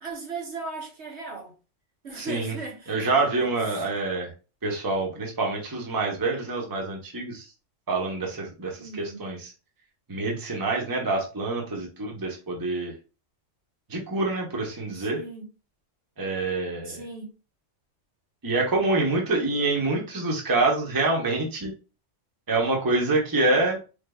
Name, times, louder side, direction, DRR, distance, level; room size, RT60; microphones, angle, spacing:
voice 1, 0.0-1.5 2.0-3.8 8.8-9.2 14.8-15.5 16.8-17.3, right 3 dB, 60° right, 1.6 m, -38 dB
voice 2, 2.2-2.5 2.9-4.3 4.6-7.5 7.9-9.5 10.1-12.9 13.9-15.2 16.2-17.0 18.4-21.7 22.5-23.8, right 2 dB, 20° right, 0.9 m, -26 dB
4.8 x 3.3 x 2.3 m
omnidirectional pair, 1.3 m